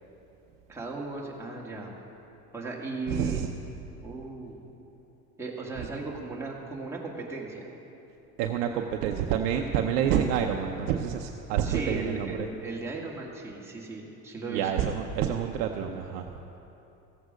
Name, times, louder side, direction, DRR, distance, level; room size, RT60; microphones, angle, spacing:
voice 1, 0.7-1.9 2.5-3.4 4.0-4.6 5.4-7.6 11.6-14.9, right 3 dB, 5° right, -4 dB, 2.0 m, -36 dB
voice 2, 3.1-3.5 8.4-12.5 14.5-16.3, right 8 dB, 75° right, 3 dB, 0.8 m, -28 dB
15.0 x 8.0 x 5.2 m, 2.9 s
hypercardioid pair, 85°, 47 cm